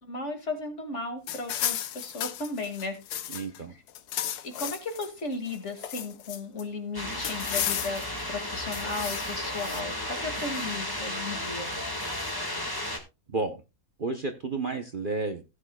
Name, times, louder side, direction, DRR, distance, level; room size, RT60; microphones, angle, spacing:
voice 1, 0.0-3.0 4.4-11.7, left 3 dB, 50° left, 2.4 m, -35 dB
sound 1, 1.3-3.6 3.9-5.1 5.5-6.6 7.2-8.2 8.7-9.8, left 11 dB, 90° left, 1.3 m, -34 dB
voice 2, 3.3-3.7 13.3-13.6 14.0-15.4, right 3 dB, 40° right, 1.0 m, -31 dB
sound 2, 6.9-13.0, left 1 dB, 15° left, 1.8 m, -33 dB
16.5 x 8.9 x 2.3 m
omnidirectional pair, 1.6 m